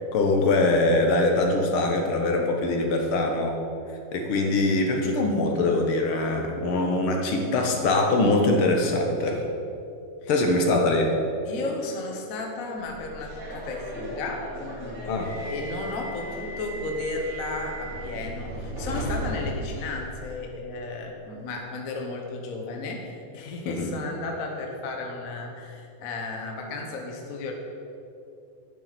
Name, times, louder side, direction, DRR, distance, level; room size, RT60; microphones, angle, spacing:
voice 1, 0.1-3.5 4.1-9.4 10.3-11.1 15.1-15.3 23.7-23.9, left 2 dB, 65° left, 2 dB, 1.4 m, -23 dB
voice 2, 11.4-15.1 15.4-27.5, left 3 dB, 80° left, 1 dB, 0.7 m, -34 dB
Subway metro underground, 12.8-20.4, right 1 dB, 35° right, 2.8 m, -36 dB
10.5 x 9.5 x 4.2 m, 2.7 s
omnidirectional pair, 3.4 m